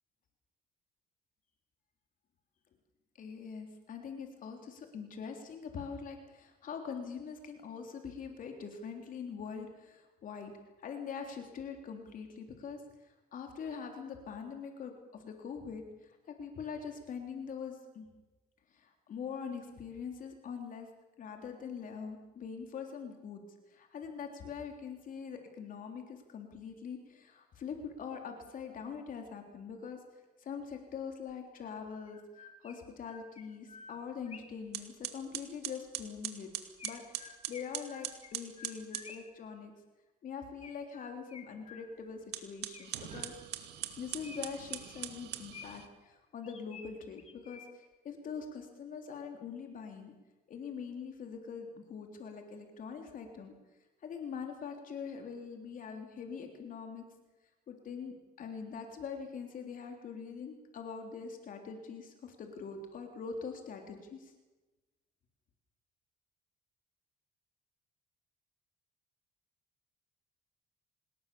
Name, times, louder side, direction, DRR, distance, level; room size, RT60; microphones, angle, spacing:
voice 1, 3.2-10.5 10.8-18.1 18.7-20.9 21.2-23.4 23.7-36.5 36.8-39.7 40.2-43.3 44.0-50.1 50.5-53.5 54.0-57.0 57.7-64.3, left 6 dB, 55° left, 4 dB, 3.5 m, -43 dB
Chirp tweet, 31.3-31.4 32.1-34.7 36.8-39.5 40.6-42.2 42.7-43.6 44.2-46.0 46.4-48.0, left 5 dB, 40° left, 2.6 m, -53 dB
sound 1, 34.2-34.3 34.7-39.1 42.2-45.9, right 12 dB, 80° right, 2.4 m, -42 dB
26.5 x 20.0 x 7.0 m, 1.1 s
cardioid pair, 110°, 17 cm